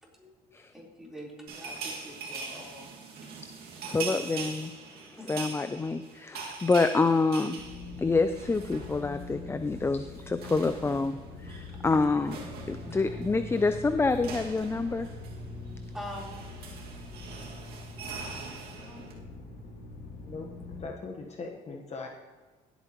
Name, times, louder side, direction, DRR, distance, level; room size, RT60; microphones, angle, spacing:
voice 1, 0.0-3.0 3.3-3.4 5.2-5.4 8.0-8.2 11.7-11.8 12.7-13.7 15.4-16.4 18.2-19.2, equal, 5° right, -4 dB, 3.9 m, -47 dB
sound 1, 1.5-9.4 9.6-9.8 10.1-19.1, right 5 dB, 75° right, 2.1 m, -42 dB
voice 2, 3.9-4.7 5.3-7.6 8.0-10.0 10.4-12.4 12.7-15.1, left 3 dB, 15° left, 10 dB, 0.4 m, -27 dB
sound 2, 7.6-20.9, left 3 dB, 65° left, 2.2 m, -43 dB
voice 3, 20.2-22.1, left 3 dB, 40° left, 1 dB, 1.2 m, -40 dB
17.5 x 8.3 x 3.0 m, 1.2 s
cardioid pair, 90°, 17 cm